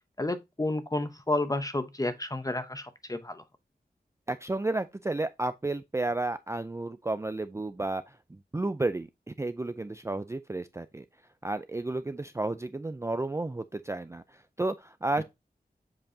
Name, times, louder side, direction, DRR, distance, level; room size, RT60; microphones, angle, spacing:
voice 1, 0.2-3.4 15.2-15.3, left 2 dB, 20° left, 0.9 m, -31 dB
voice 2, 4.3-8.2 8.5-11.0 11.4-15.2, right 2 dB, 15° right, 0.4 m, -32 dB
7.6 x 4.6 x 2.7 m
wide cardioid pair, 90°, 16 cm